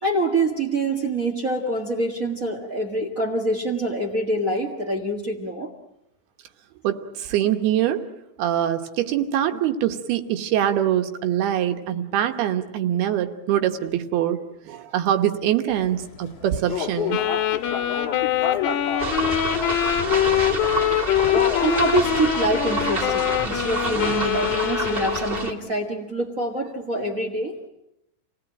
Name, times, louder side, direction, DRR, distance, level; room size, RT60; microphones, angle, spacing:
voice 1, 0.0-5.7 21.6-27.6, right 1 dB, 50° right, 4 dB, 0.9 m, -25 dB
voice 2, 6.8-8.0 8.4-14.4 14.7-17.2 18.6-18.9, right 11 dB, 75° right, 7 dB, 3.1 m, -24 dB
sound 1, 15.7-24.5, left 7 dB, 55° left, 2.0 m, -33 dB
Wind instrument woodwind instrument, 17.1-25.6, left 11 dB, 90° left, 3.6 m, -24 dB
sound 2, 19.0-25.5, right 3 dB, 25° right, 1.3 m, -28 dB
29.0 x 18.0 x 9.0 m, 0.88 s
omnidirectional pair, 4.6 m